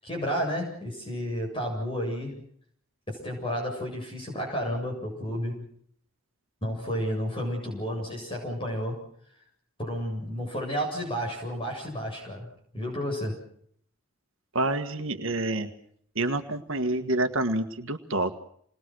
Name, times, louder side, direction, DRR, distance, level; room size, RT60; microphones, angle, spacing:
voice 1, 0.0-2.3 3.1-5.7 6.6-9.0 9.8-12.5 12.7-13.4, equal, 25° left, 0 dB, 7.7 m, -31 dB
voice 2, 14.5-15.7 16.2-18.3, right 2 dB, 65° right, 7 dB, 1.8 m, -27 dB
28.5 x 21.0 x 6.4 m, 0.64 s
head